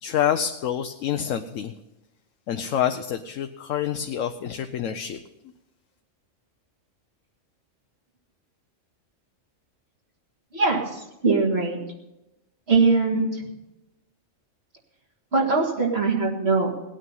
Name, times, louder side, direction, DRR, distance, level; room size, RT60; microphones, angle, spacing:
voice 1, 0.0-1.7 2.5-5.2, left 9 dB, 80° left, 7 dB, 1.0 m, -27 dB
voice 2, 10.5-11.8 12.7-13.4 15.3-16.7, right 4 dB, 55° right, -1 dB, 2.3 m, -22 dB
18.0 x 8.9 x 5.5 m, 0.96 s
omnidirectional pair, 1.3 m